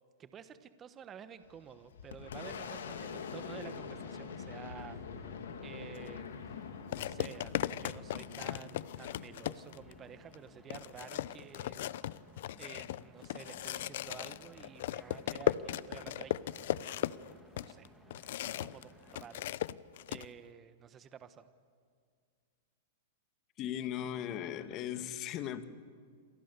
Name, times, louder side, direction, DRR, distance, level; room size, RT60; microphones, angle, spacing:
voice 1, 0.2-12.2 12.6-17.2 17.6-17.9 18.4-19.5 20.1-21.5, right 8 dB, 25° right, 11 dB, 1.2 m, -51 dB
Boom, 1.4-10.8, left 6 dB, 85° left, 3.0 m, -45 dB
sound 1, 3.3-19.4, right 2 dB, 5° right, 3.0 m, -61 dB
sound 2, 5.9-6.1 6.9-9.9 10.3-10.4 10.7-18.8 19.1-20.3, left 13 dB, 65° left, 0.7 m, -37 dB
voice 2, 23.6-25.6, left 10 dB, 35° left, 10 dB, 1.7 m, -37 dB
28.0 x 27.5 x 7.0 m, 2.1 s
hypercardioid pair, 140°, 0 cm